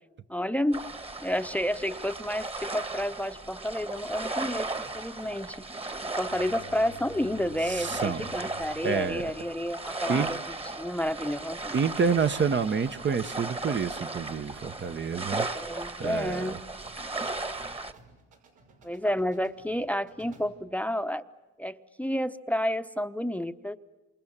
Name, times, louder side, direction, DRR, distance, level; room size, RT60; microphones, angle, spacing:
voice 1, 0.3-0.8 1.2-5.7 6.2-11.8 15.5-16.6 18.8-21.2 21.6-23.8, equal, 5° left, 0.8 m, -30 dB
sound 1, 0.7-17.9, right 3 dB, 20° right, 1.4 m, -36 dB
sound 2, 4.8-20.7, right 2 dB, 85° right, 5.9 m, -58 dB
Bowed string instrument, 6.2-10.2, left 12 dB, 55° left, 1.0 m, -50 dB
voice 2, 7.7-8.2 8.8-9.3 10.1-10.3 11.7-15.5 16.0-16.6, right 6 dB, 40° right, 0.9 m, -28 dB
28.0 x 27.0 x 7.3 m
cardioid pair, 90°, 30 cm